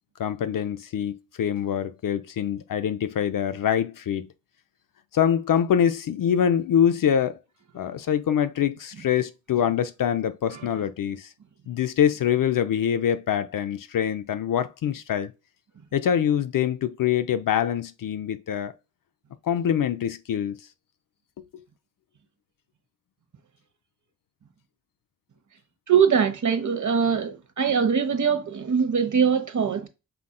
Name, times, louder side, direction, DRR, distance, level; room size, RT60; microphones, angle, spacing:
voice 1, 0.2-4.3 5.1-7.4 7.7-11.3 11.7-15.3 15.9-18.7 19.4-20.6, left 9 dB, 50° left, 0.6 m, -24 dB
voice 2, 25.9-29.9, right 7 dB, 40° right, 1.1 m, -22 dB
5.8 x 3.6 x 2.2 m
hypercardioid pair, 40°, 44 cm